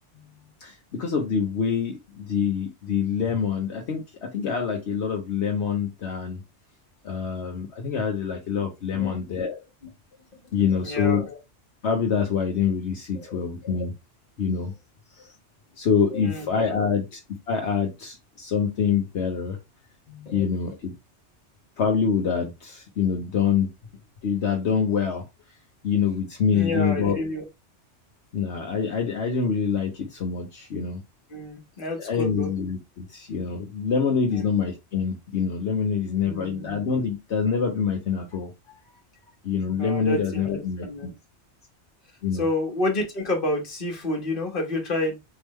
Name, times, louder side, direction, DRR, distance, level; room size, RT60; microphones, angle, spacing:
voice 1, 0.6-6.4 7.0-9.6 10.5-11.4 11.8-13.9 14.4-14.7 15.2-15.3 15.8-17.2 17.5-19.6 20.1-20.9 21.8-23.7 24.2-25.2 25.8-27.2 28.3-31.0 32.0-38.5 39.4-41.1 42.2-42.4, left 6 dB, 75° left, 1 dB, 1.2 m, -26 dB
voice 2, 8.9-9.4 10.8-11.2 13.1-13.4 16.1-16.5 20.2-20.4 26.5-27.4 31.3-32.5 34.3-34.4 36.2-36.8 39.8-41.1 42.3-45.2, left 1 dB, 50° left, 1 dB, 1.6 m, -29 dB
4.5 x 3.5 x 3.1 m, 0.22 s
omnidirectional pair, 1.2 m